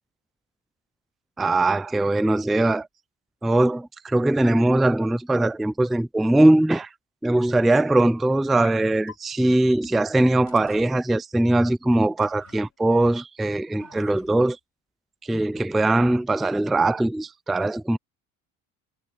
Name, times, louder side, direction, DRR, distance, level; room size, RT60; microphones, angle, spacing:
voice 1, 1.4-2.9 3.4-6.9 7.2-14.6 15.2-18.0, right 2 dB, ahead, 0.3 m, -21 dB
sound 1, 8.6-8.8 9.1-9.2 9.8-9.9 10.5-10.9 12.2-12.7 13.8-14.5, left 9 dB, 45° left, 5.1 m, -47 dB
supercardioid pair, 100°, 36 cm